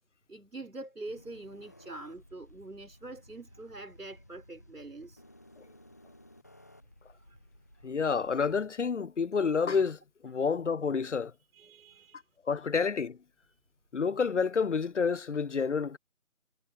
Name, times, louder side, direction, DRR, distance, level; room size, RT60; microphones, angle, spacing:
voice 1, 0.3-5.2 7.2-7.4 7.8-7.9 11.5-12.2, right 2 dB, 85° right, 5.8 m, -45 dB
sound 1, 1.0-8.7, left 1 dB, 10° left, 1.0 m, -57 dB
voice 2, 7.8-11.3 12.5-13.2 13.9-16.0, left 5 dB, 55° left, 0.6 m, -29 dB
figure-of-eight pair, 165°, 44 cm